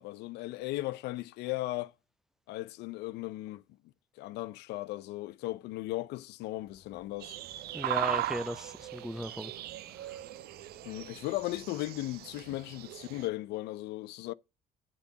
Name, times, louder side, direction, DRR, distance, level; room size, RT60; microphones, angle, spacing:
voice 1, 0.0-1.9 2.5-3.6 4.2-7.4 10.8-14.3, left 17 dB, 85° left, 0.6 m, -37 dB
sound 1, 6.5-13.3, left 4 dB, 45° left, 1.8 m, -62 dB
sound 2, 7.2-13.3, right 14 dB, 70° right, 0.5 m, -38 dB
voice 2, 7.7-9.5 10.0-10.2, equal, 5° right, 0.5 m, -37 dB
8.3 x 4.2 x 6.5 m
cardioid pair, 110°, 17 cm